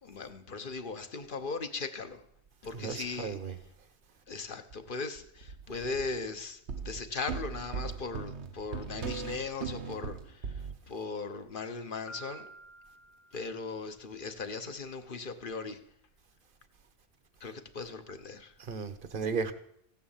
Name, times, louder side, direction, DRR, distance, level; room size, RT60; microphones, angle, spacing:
voice 1, 0.0-2.2 2.6-3.4 4.3-12.5 13.3-15.8 17.4-18.5, left 4 dB, 50° left, 1.3 m, -38 dB
voice 2, 2.7-3.5 18.6-19.5, right 5 dB, 50° right, 1.2 m, -34 dB
sound 1, 4.7-4.8 5.2-6.2 6.7-10.7, right 5 dB, 70° right, 1.3 m, -39 dB
Piano, 12.1-14.0, right 2 dB, 85° left, 2.7 m, -50 dB
15.5 x 9.6 x 7.3 m
omnidirectional pair, 1.2 m